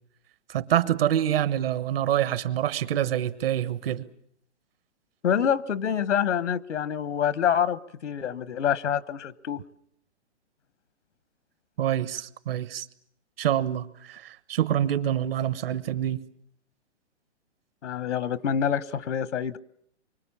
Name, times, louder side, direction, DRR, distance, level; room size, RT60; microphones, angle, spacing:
voice 1, 0.5-4.0 11.8-12.8 13.4-16.2, right 11 dB, 55° right, 15 dB, 1.2 m, -26 dB
voice 2, 5.2-9.6 17.8-19.6, left 8 dB, 85° left, 18 dB, 1.0 m, -26 dB
24.5 x 23.5 x 7.2 m, 0.70 s
hypercardioid pair, 145°, 35 cm